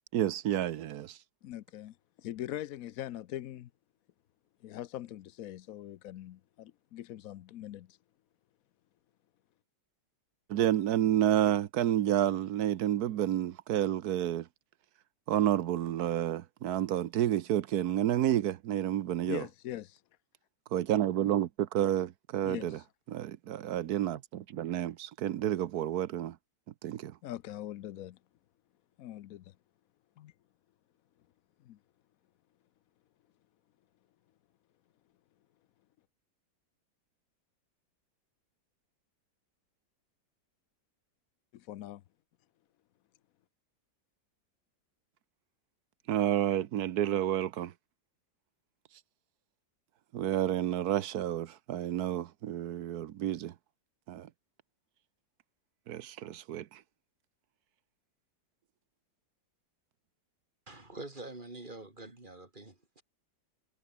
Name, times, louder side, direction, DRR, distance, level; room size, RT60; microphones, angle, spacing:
voice 1, 0.1-1.2 10.5-14.5 15.3-19.4 20.7-22.8 23.1-26.4 26.8-27.1 46.1-47.7 50.1-53.5 54.1-54.3 55.9-56.8, right 11 dB, 65° right, 1.2 m, -30 dB
voice 2, 1.4-3.7 4.6-8.0 19.3-20.0 22.4-22.8 27.2-28.2 29.0-29.5 30.2-30.3 31.6-31.8 41.5-42.0, left 13 dB, 65° left, 0.9 m, -42 dB
voice 3, 60.7-63.0, right 2 dB, 25° right, 3.8 m, -46 dB
omnidirectional pair, 2.0 m